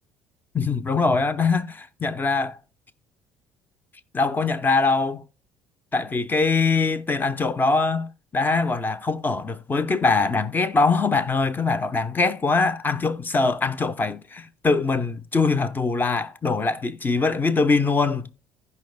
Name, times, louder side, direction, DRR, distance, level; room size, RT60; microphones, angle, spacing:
voice 1, 0.5-2.6 4.1-5.2 5.9-18.3, left 4 dB, 25° left, 0.8 m, -23 dB
15.0 x 5.4 x 2.2 m
supercardioid pair, 90°, 8 cm